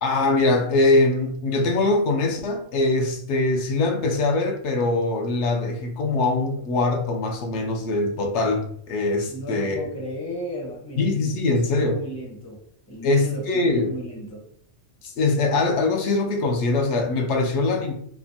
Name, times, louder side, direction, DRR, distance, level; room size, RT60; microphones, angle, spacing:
voice 1, 0.0-9.8 11.0-12.0 13.0-13.9 15.0-17.9, left 2 dB, 70° left, 3 dB, 0.8 m, -22 dB
voice 2, 9.2-12.6 12.9-14.4, equal, 20° left, -3 dB, 0.5 m, -35 dB
3.3 x 2.1 x 2.5 m, 0.66 s
omnidirectional pair, 1.3 m